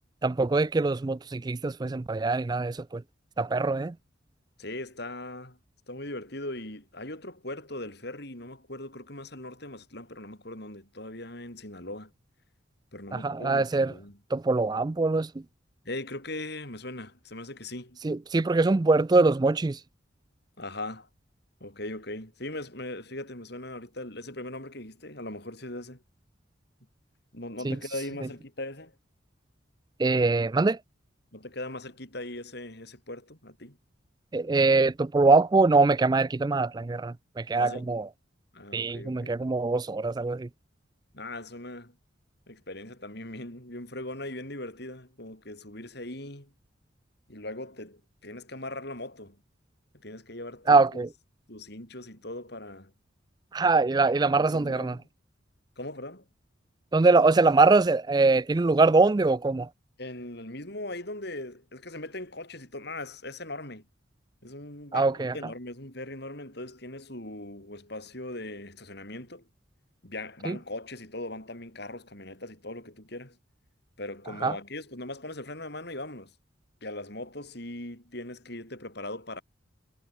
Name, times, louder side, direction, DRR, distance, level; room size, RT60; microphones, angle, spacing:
voice 1, 0.2-3.0 3.4-3.9 13.1-13.9 14.3-15.3 18.0-19.8 27.6-27.8 30.0-30.8 34.3-38.0 38.7-40.5 50.7-51.1 53.5-55.0 56.9-59.7 64.9-65.3 70.5-70.6 74.4-74.6, right 3 dB, 20° right, 0.3 m, -23 dB
voice 2, 4.6-5.6 5.9-12.1 12.9-14.2 15.8-18.0 20.6-21.1 21.6-26.0 27.3-28.9 31.3-33.8 37.5-37.9 38.5-39.4 41.1-41.9 42.5-46.5 47.3-49.4 50.0-51.0 51.5-52.9 54.2-55.1 55.8-56.2 60.0-63.8 64.4-69.4 70.0-73.4 74.0-76.3 76.8-79.4, left 1 dB, 55° left, 6.9 m, -39 dB
head